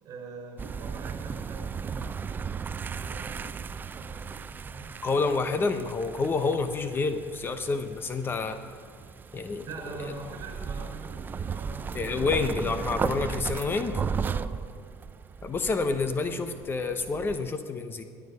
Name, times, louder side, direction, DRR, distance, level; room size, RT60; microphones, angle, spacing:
voice 1, 0.0-2.5 2.8-5.0 9.7-12.2 14.2-14.5, right 3 dB, 45° right, 2 dB, 4.6 m, -43 dB
sound 1, 0.6-17.5, right 6 dB, 25° right, 0.4 m, -36 dB
voice 2, 5.0-8.6 9.3-9.7 10.0-10.1 11.9-14.1 15.4-18.0, left 4 dB, 25° left, 8 dB, 0.9 m, -28 dB
17.5 x 10.5 x 5.4 m, 2.3 s
supercardioid pair, 120°, 8 cm